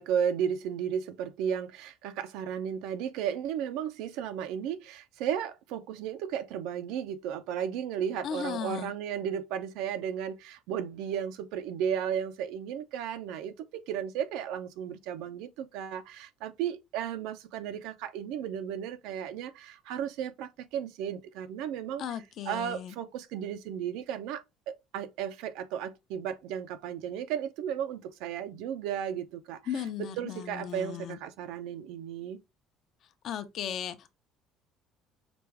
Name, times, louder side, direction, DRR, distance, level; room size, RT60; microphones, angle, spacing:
voice 1, 0.0-22.0 22.5-29.6 30.0-32.4, right 9 dB, 80° right, 0.6 m, -34 dB
voice 2, 8.2-8.9 22.0-22.9 29.7-31.2 33.2-34.1, left 9 dB, 50° left, 0.6 m, -36 dB
5.0 x 2.3 x 3.4 m
cardioid pair, 150°, 0 cm